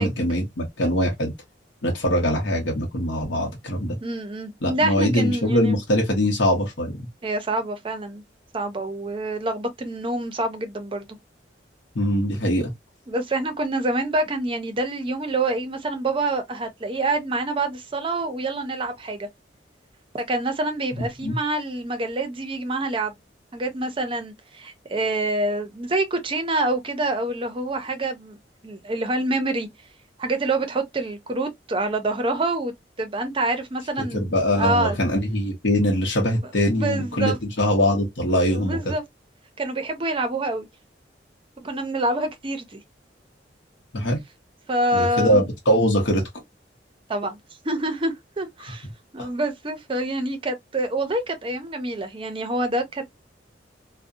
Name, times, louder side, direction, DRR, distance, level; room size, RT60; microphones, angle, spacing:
voice 1, 0.0-1.3 1.8-4.0 4.6-6.9 12.0-12.7 21.0-21.4 34.1-37.3 37.6-38.9 43.9-44.2 44.9-46.3 49.2-49.3, equal, 80° left, 0.8 m, -22 dB
voice 2, 4.0-5.8 7.2-8.2 8.5-11.1 13.1-19.3 20.1-23.1 23.5-28.4 28.6-29.7 30.2-32.7 33.0-34.2 34.5-35.0 36.7-37.4 38.5-39.0 39.6-40.7 41.6-42.8 44.7-45.4 47.1-47.4 47.6-48.9 49.1-53.2, right 2 dB, 30° right, 0.5 m, -26 dB
2.6 x 2.1 x 2.3 m
head